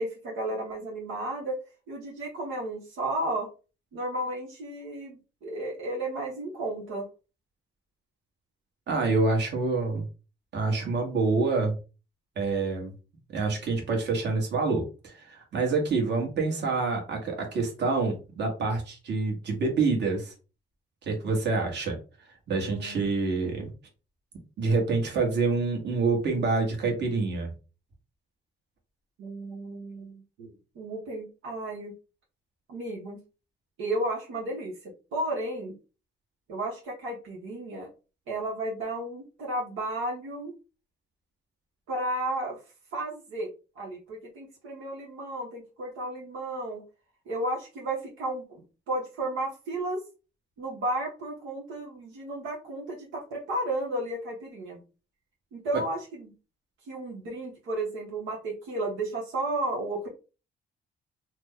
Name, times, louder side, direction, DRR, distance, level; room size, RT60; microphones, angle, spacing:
voice 1, 0.0-1.6 1.9-3.5 3.9-7.1 22.7-23.2 29.2-31.9 32.7-33.2 33.8-35.7 36.5-37.9 38.3-40.6 41.9-42.6 42.9-43.5 43.7-46.8 47.3-50.0 50.6-54.8 55.5-56.3 56.9-60.1, right 1 dB, 85° right, -2 dB, 1.1 m, -33 dB
voice 2, 8.9-10.0 10.5-11.7 12.4-12.9 13.3-20.3 21.0-22.0 22.5-23.7 24.6-27.5 55.7-55.8, right 3 dB, 60° right, 1 dB, 1.3 m, -27 dB
2.9 x 2.2 x 3.6 m, 0.32 s
cardioid pair, 90°, 20 cm